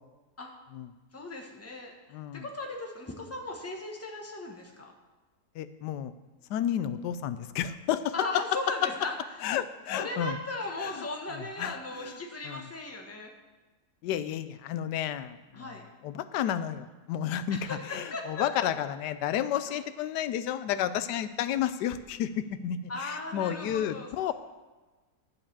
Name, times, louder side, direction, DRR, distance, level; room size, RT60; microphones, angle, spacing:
voice 1, 1.1-4.9 8.1-9.2 9.9-13.3 15.5-15.8 17.5-17.8 18.1-18.4 19.7-19.8 22.9-24.1, left 2 dB, 10° left, 1 dB, 1.0 m, -37 dB
voice 2, 2.1-2.5 5.5-6.1 6.5-8.1 9.4-10.4 10.8-11.1 11.3-12.2 12.4-12.7 14.0-24.3, left 10 dB, 90° left, 12 dB, 1.2 m, -32 dB
11.0 x 4.9 x 7.3 m, 1.2 s
omnidirectional pair, 1.7 m